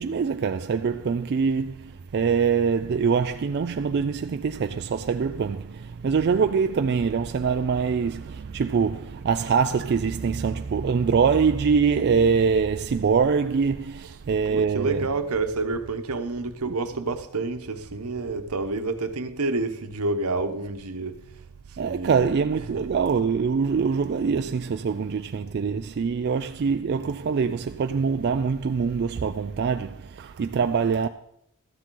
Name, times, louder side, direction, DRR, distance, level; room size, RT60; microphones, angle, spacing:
voice 1, 0.0-15.1 16.7-16.8 21.8-31.1, right 5 dB, 45° right, 0.3 m, -24 dB
voice 2, 14.5-21.2 21.8-22.3 22.7-22.9, right 3 dB, 80° right, 0.9 m, -29 dB
13.0 x 9.8 x 3.8 m
head